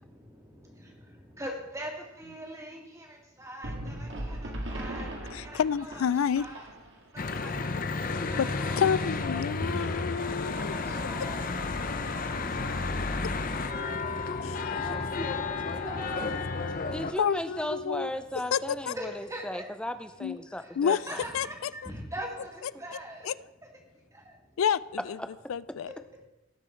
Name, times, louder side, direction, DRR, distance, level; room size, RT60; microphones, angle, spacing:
voice 1, 1.4-1.9 2.2-3.1 3.4-5.1 5.4-6.0 6.3-6.6 7.6-7.7 8.2-9.2 10.6-11.6 12.5-14.1 14.8-16.5 19.0-19.6 21.1-23.3, equal, 15° right, 0 dB, 2.1 m, -42 dB
sound 1, 3.6-7.2, right 1 dB, 60° right, 2.1 m, -38 dB
voice 2, 5.3-6.5 8.4-8.5 8.8-10.7 14.4-14.7 17.2-18.1 18.5-18.9 20.2-20.4 20.8-21.0 21.3-21.5 23.3-23.4 24.6-25.2 25.5-25.9, left 7 dB, 80° left, 19 dB, 0.4 m, -28 dB
Church bell / Traffic noise roadway noise, 7.2-17.1, left 3 dB, 40° left, 0.7 m, -32 dB
voice 3, 16.9-21.2 25.2-25.3, left 1 dB, 5° left, 9 dB, 0.6 m, -36 dB
18.5 x 6.2 x 4.5 m, 1.0 s
head